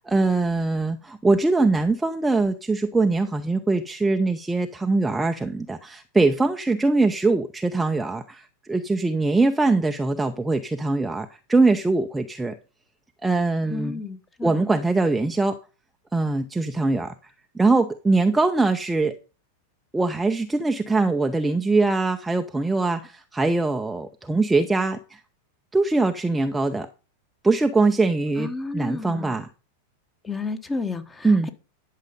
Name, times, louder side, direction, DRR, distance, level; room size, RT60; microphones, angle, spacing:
voice 1, 0.1-12.5 13.2-14.0 14.4-15.6 16.1-17.1 17.5-19.2 19.9-25.2 25.7-26.9 27.4-29.5 31.2-31.5, right 3 dB, 5° right, 0.7 m, -22 dB
voice 2, 13.7-14.7 28.4-29.4 30.2-31.5, left 3 dB, 15° left, 1.3 m, -32 dB
11.5 x 6.5 x 5.4 m
figure-of-eight pair, 90°, 0 cm